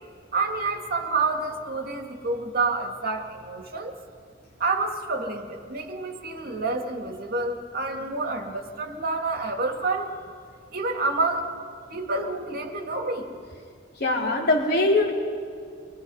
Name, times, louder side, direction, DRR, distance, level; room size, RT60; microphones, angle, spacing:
voice 1, 0.3-3.9 4.6-10.1 10.7-11.5 11.9-13.3, right 3 dB, 55° right, 4 dB, 2.1 m, -28 dB
voice 2, 14.0-15.1, left 2 dB, 55° left, -3 dB, 4.3 m, -21 dB
29.5 x 22.5 x 5.6 m, 2.3 s
head